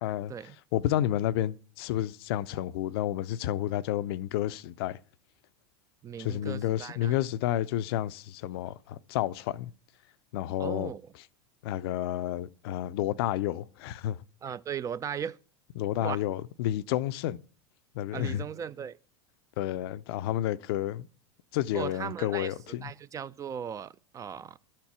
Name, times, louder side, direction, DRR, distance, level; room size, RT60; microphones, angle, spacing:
voice 1, 0.0-0.3 0.7-5.0 6.2-9.7 10.3-10.9 11.6-14.2 15.8-17.4 17.9-18.4 19.6-21.1 21.5-22.9, left 13 dB, 60° left, 0.4 m, -30 dB
voice 2, 6.0-7.2 10.6-11.1 14.4-15.4 16.0-16.2 18.1-19.0 21.7-24.6, right 8 dB, 25° right, 0.3 m, -37 dB
12.0 x 4.4 x 6.0 m
hypercardioid pair, 90°, 14 cm